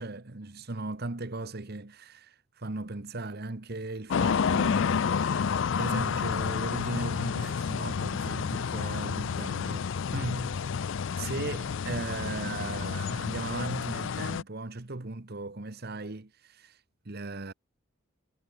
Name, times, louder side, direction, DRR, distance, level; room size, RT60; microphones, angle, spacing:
voice 1, 0.0-10.5 11.2-17.5, right 2 dB, 50° right, 1.2 m, -37 dB
sound 1, 4.1-14.4, left 6 dB, 60° left, 0.4 m, -30 dB
head